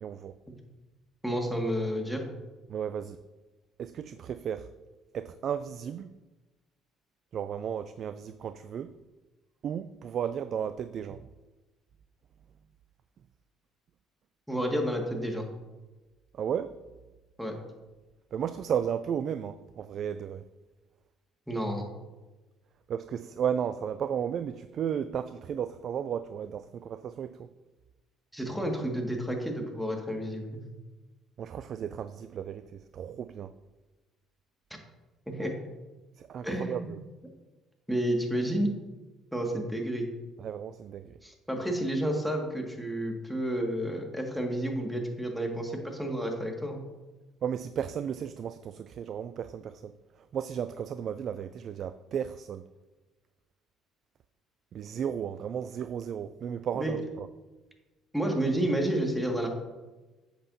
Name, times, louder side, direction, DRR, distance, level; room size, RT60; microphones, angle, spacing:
voice 1, 0.0-0.3 2.7-3.2 3.8-4.7 5.1-6.1 7.3-8.9 9.6-11.3 16.3-16.7 18.3-20.4 22.9-27.5 31.4-33.5 36.2-37.0 40.4-41.2 47.4-49.9 50.2-52.6 54.7-57.3, right 8 dB, 50° right, 12 dB, 0.3 m, -34 dB
voice 2, 1.2-2.2 14.5-15.5 17.4-17.5 21.5-21.9 28.3-30.6 35.3-35.5 36.4-37.0 37.9-38.7 39.3-40.1 41.2-46.8 56.7-56.9 58.1-59.5, right 1 dB, ahead, 2 dB, 1.9 m, -30 dB
10.0 x 7.6 x 2.7 m, 1.2 s
hypercardioid pair, 55°, 0 cm